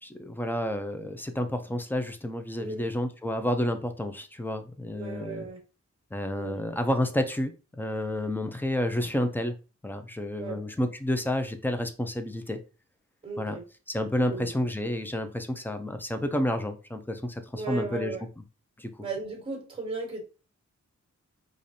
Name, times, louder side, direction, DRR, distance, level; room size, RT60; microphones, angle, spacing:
voice 1, 0.0-5.5 6.1-9.5 9.8-12.6 13.4-13.6 13.9-18.2 18.8-18.9, left 1 dB, 5° left, 7 dB, 0.4 m, -30 dB
voice 2, 4.9-5.6 6.4-6.6 10.4-10.6 13.2-13.6 14.2-14.5 17.5-18.2 19.0-20.2, right 3 dB, 15° right, 0 dB, 1.3 m, -36 dB
4.8 x 2.5 x 2.7 m, 0.33 s
wide cardioid pair, 135°, 30 cm